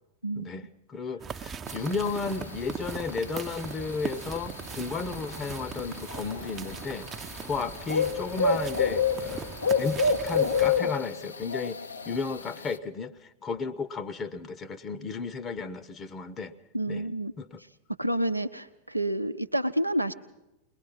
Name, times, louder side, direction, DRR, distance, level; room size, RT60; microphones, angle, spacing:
voice 1, 0.4-7.1 7.4-9.5 9.8-11.8 12.1-16.5 16.9-17.1 17.4-17.6, left 4 dB, 25° left, 13 dB, 0.8 m, -34 dB
sound 1, 1.2-10.8, right 6 dB, 25° right, 0.6 m, -40 dB
sound 2, 1.7-12.8, left 5 dB, 75° left, 0.7 m, -30 dB
voice 2, 16.7-17.3 18.0-20.1, right 1 dB, 90° right, 9 dB, 0.7 m, -29 dB
21.5 x 21.0 x 5.7 m, 0.91 s
figure-of-eight pair, 90°, 0 cm